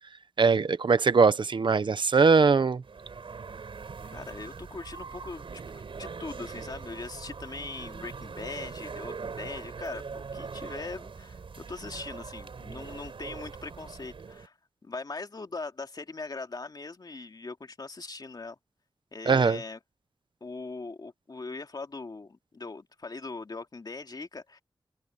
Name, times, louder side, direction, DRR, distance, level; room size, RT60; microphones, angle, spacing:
voice 1, 0.4-2.8 19.3-19.6, right 4 dB, 65° right, 0.9 m, -21 dB
sound 1, 2.8-14.5, right 5 dB, 85° right, 4.4 m, -42 dB
voice 2, 4.1-11.4 11.7-14.6 14.8-18.6 19.1-19.8 20.4-24.6, left 3 dB, 50° left, 2.5 m, -40 dB
wide cardioid pair, 100°, 9 cm